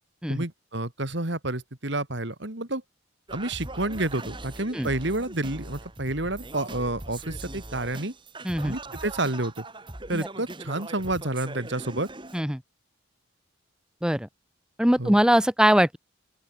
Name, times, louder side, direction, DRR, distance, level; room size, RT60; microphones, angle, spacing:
voice 1, 0.3-2.8 3.3-8.1 8.6-9.6 10.1-12.1 15.0-15.1, right 2 dB, 55° right, 2.5 m, -29 dB
Singing, 3.3-12.4, right 2 dB, 25° right, 2.4 m, -40 dB
voice 2, 8.4-8.8 10.1-10.3 12.3-12.6 14.0-14.3 14.8-16.0, equal, 5° right, 1.0 m, -21 dB
open air
head